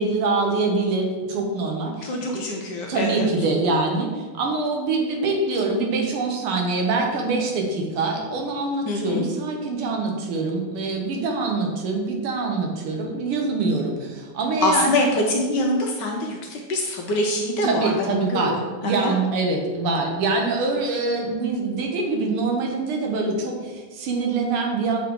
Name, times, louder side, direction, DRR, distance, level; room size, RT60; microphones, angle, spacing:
voice 1, 0.0-2.4 2.9-14.9 17.6-18.5 18.8-25.0, right 3 dB, 85° right, 1 dB, 1.9 m, -24 dB
voice 2, 2.0-3.3 8.9-9.2 14.6-19.1, left 2 dB, 70° left, 1 dB, 1.1 m, -24 dB
7.4 x 3.9 x 3.6 m, 1.3 s
omnidirectional pair, 2.4 m